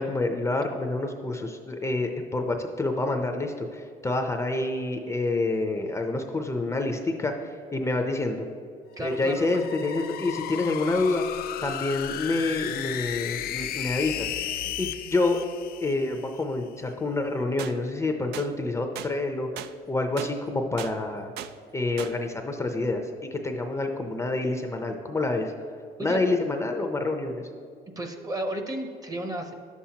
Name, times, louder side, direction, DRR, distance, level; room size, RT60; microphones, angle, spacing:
voice 1, 0.0-8.5 9.0-11.2 11.6-15.5 15.8-19.5 19.9-21.3 21.7-25.5 26.0-27.5, left 2 dB, 15° left, 4 dB, 0.6 m, -28 dB
sound 1, 9.0-16.4, left 11 dB, 65° left, 0.4 m, -34 dB
voice 2, 9.0-9.6 26.0-26.3 28.0-29.5, right 1 dB, 20° right, 5 dB, 0.8 m, -33 dB
sound 2, 17.6-17.7 18.3-18.5 19.0-19.1 19.6-19.7 20.2-20.3 20.8-20.9 21.4-21.5 22.0-22.1, right 11 dB, 75° right, 0.4 m, -37 dB
11.0 x 7.2 x 2.8 m, 2.3 s
cardioid pair, 110°, 17 cm